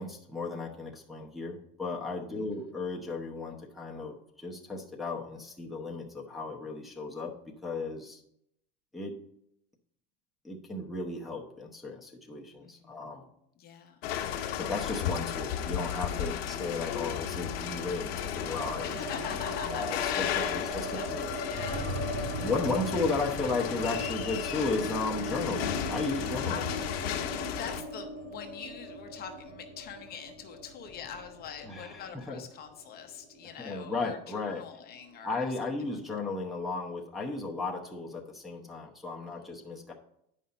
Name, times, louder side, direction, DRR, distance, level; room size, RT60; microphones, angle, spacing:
voice 1, 0.0-7.3 7.6-8.2 8.9-9.1 10.4-13.3 14.6-18.9 19.6-20.3 20.7-21.3 22.4-26.6 31.7-32.4 33.6-34.6 35.2-39.9, left 3 dB, ahead, -3 dB, 0.8 m, -35 dB
voice 2, 12.6-13.0 13.6-14.0 16.3-16.5 18.8-22.0 22.4-22.7 26.5-26.7 27.3-35.5 35.9-36.0 39.3-39.9, left 7 dB, 30° left, 5 dB, 0.7 m, -44 dB
sound 1, 14.0-27.8, left 9 dB, 80° left, 1.1 m, -34 dB
sound 2, 18.6-34.7 34.9-35.0 35.3-36.0, right 1 dB, 85° right, 3.1 m, -39 dB
9.2 x 5.5 x 4.2 m, 0.76 s
supercardioid pair, 145°, 30 cm